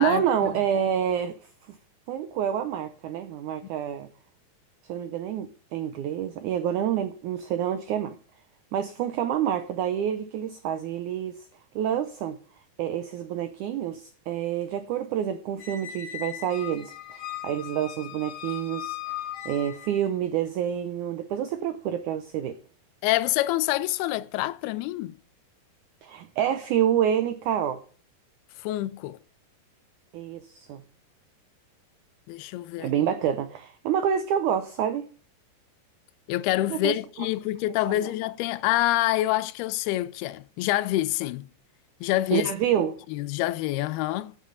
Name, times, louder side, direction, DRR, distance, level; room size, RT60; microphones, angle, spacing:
voice 1, 0.0-1.4 1.7-1.8 2.1-4.1 4.8-8.1 8.7-11.4 11.7-12.4 12.8-19.1 19.4-22.6 26.0-27.8 30.1-30.8 32.8-35.1 36.7-36.9 37.9-38.0 42.3-43.0, right 9 dB, 85° right, 1.7 m, -28 dB
Squeak, 15.6-20.1, left 12 dB, 55° left, 1.4 m, -38 dB
voice 2, 23.0-25.1 28.6-29.2 32.3-32.9 36.3-41.5 42.0-42.5 43.1-44.3, left 16 dB, 90° left, 2.6 m, -26 dB
8.5 x 7.7 x 5.4 m
omnidirectional pair, 4.4 m